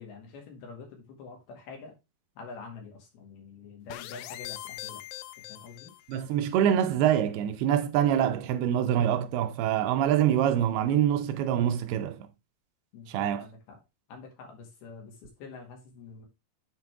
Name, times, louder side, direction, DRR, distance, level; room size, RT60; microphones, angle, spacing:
voice 1, 0.0-1.9 2.4-5.0 5.5-5.9 12.9-13.8 14.1-16.3, left 4 dB, 75° left, 3.9 m, -46 dB
sound 1, 3.9-6.3, left 15 dB, 90° left, 2.7 m, -42 dB
voice 2, 6.1-12.3 13.1-13.4, right 10 dB, 80° right, 2.7 m, -25 dB
9.7 x 4.2 x 3.4 m
omnidirectional pair, 4.6 m